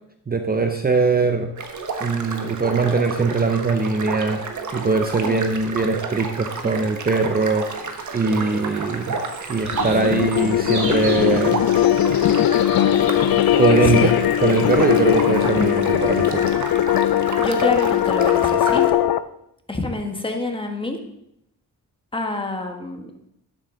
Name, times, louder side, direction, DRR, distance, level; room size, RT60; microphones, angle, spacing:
voice 1, 0.3-1.5 2.0-4.5 4.7-7.7 8.1-9.2 9.5-11.6 13.6-16.5, right 4 dB, 25° right, 6 dB, 0.7 m, -21 dB
sound 1, 1.6-18.9, right 4 dB, 50° right, 1.4 m, -31 dB
sound 2, 7.3-16.4, right 3 dB, 75° right, 3.4 m, -40 dB
sound 3, 9.6-19.2, left 11 dB, 70° left, 0.6 m, -19 dB
voice 2, 17.4-19.0 19.7-21.0 22.1-23.1, left 2 dB, 15° left, 4 dB, 1.5 m, -27 dB
12.0 x 11.0 x 3.9 m, 0.79 s
wide cardioid pair, 135°, 37 cm